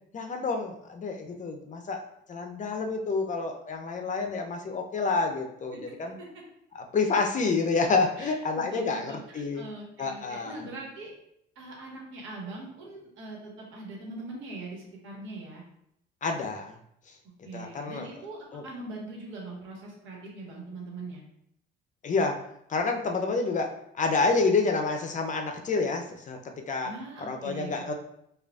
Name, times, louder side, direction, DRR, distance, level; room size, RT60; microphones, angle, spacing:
voice 1, 0.1-2.0 2.3-6.1 6.9-9.6 10.0-10.6 16.2-16.8 17.5-18.1 18.5-18.6 22.0-22.4 22.7-26.4 26.7-26.9 27.3-27.9, left 4 dB, 35° left, 4 dB, 0.6 m, -28 dB
voice 2, 5.9-6.3 8.2-11.1 11.5-15.6 17.4-21.2 26.8-27.8, right 2 dB, 65° right, -2 dB, 1.3 m, -42 dB
4.7 x 2.4 x 2.3 m, 0.74 s
supercardioid pair, 70°, 21 cm